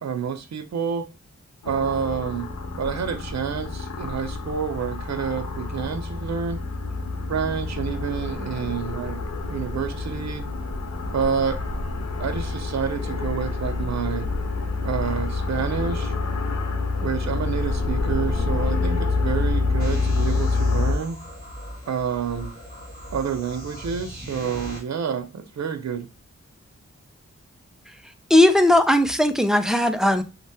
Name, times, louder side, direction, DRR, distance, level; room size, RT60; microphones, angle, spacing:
voice 1, 0.0-1.1 1.6-2.5 2.8-6.6 7.3-9.2 9.5-10.4 11.1-11.6 12.2-14.3 14.8-16.1 17.0-21.2 21.9-22.5 23.1-26.1, right 7 dB, 65° right, 0.5 m, -28 dB
sound 1, 1.6-21.0, left 3 dB, 65° left, 0.6 m, -27 dB
sound 2, 19.8-24.8, equal, 30° left, 1.8 m, -39 dB
voice 2, 28.3-30.2, left 1 dB, ahead, 0.3 m, -17 dB
3.3 x 2.2 x 2.6 m
wide cardioid pair, 75°, 29 cm